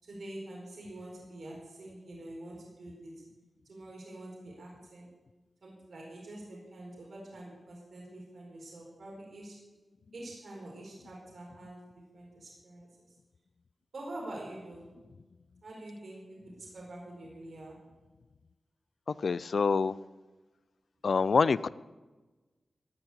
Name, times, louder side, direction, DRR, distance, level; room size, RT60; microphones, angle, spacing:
voice 1, 0.0-3.2 3.6-5.1 5.6-9.6 10.1-11.9 12.1-13.2 13.9-14.8 15.6-17.8, right 1 dB, 75° right, -3 dB, 4.3 m, -46 dB
voice 2, 19.1-20.0 21.0-21.7, left 5 dB, 70° left, 18 dB, 0.4 m, -26 dB
16.0 x 5.9 x 9.8 m, 1.2 s
wide cardioid pair, 75°, 0 cm